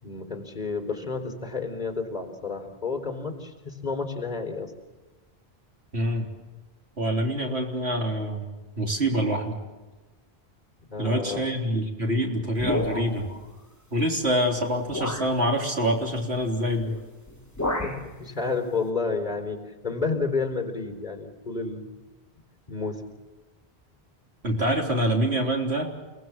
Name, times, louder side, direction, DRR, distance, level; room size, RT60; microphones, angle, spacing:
voice 1, 0.0-4.7 10.9-11.4 17.8-21.9 22.7-23.0, left 4 dB, 45° left, 5 dB, 4.2 m, -30 dB
voice 2, 5.9-6.3 7.0-9.6 11.0-13.3 13.9-16.9 24.4-25.9, equal, 85° right, 0 dB, 4.0 m, -26 dB
sound 1, 12.6-13.4 14.3-14.4 14.9-15.4 16.8-17.0 17.3-18.1, left 1 dB, 15° left, 2.7 m, -30 dB
29.5 x 19.0 x 7.5 m, 1.2 s
omnidirectional pair, 1.1 m